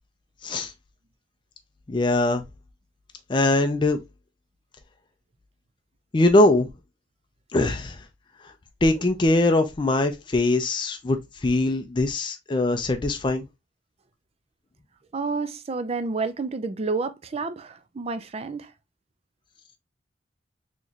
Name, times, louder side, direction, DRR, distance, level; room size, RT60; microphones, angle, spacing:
voice 1, 1.9-2.4 3.3-4.0 6.1-6.7 7.5-8.0 8.8-11.2 11.4-13.4, left 2 dB, 25° left, 0.4 m, -21 dB
voice 2, 15.1-18.7, right 4 dB, 35° right, 0.4 m, -30 dB
4.0 x 3.0 x 2.3 m
head